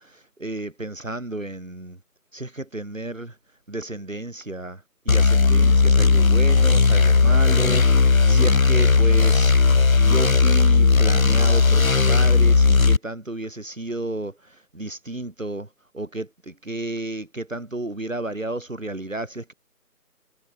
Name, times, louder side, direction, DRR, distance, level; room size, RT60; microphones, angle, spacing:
voice 1, 0.0-2.0 2.3-3.4 3.7-15.7 15.9-19.5, right 2 dB, 55° right, 5.8 m, -32 dB
sound 1, 5.1-13.0, left 4 dB, 60° left, 0.8 m, -16 dB
figure-of-eight pair, 180°, 47 cm